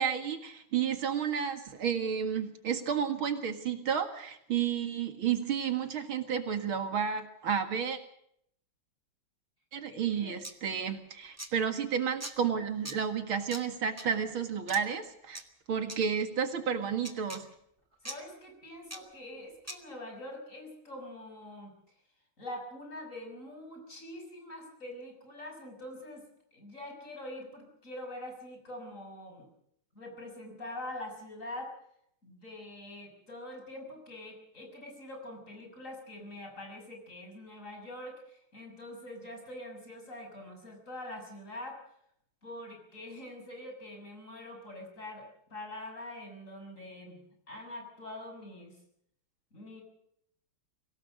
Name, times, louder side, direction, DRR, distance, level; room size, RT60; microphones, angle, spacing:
voice 1, 0.0-8.0 9.7-15.4 15.7-17.5, right 7 dB, 75° right, 7 dB, 2.7 m, -31 dB
voice 2, 9.9-10.4 18.0-21.7 22.4-26.2 26.5-29.5 29.9-31.7 32.2-41.8 42.4-48.8 49.5-49.8, left 1 dB, 35° left, 3 dB, 6.7 m, -44 dB
sound 1, 10.4-10.5 11.4-11.5 12.2-12.3 12.9-13.0 13.5-13.6 14.0-14.1 14.7-14.8 15.4-15.5 15.9-16.0 17.0-17.4 18.1-18.2 18.9-19.0 19.7-19.8, right 1 dB, 10° right, 1.6 m, -40 dB
24.5 x 17.5 x 6.4 m, 0.70 s
omnidirectional pair, 2.3 m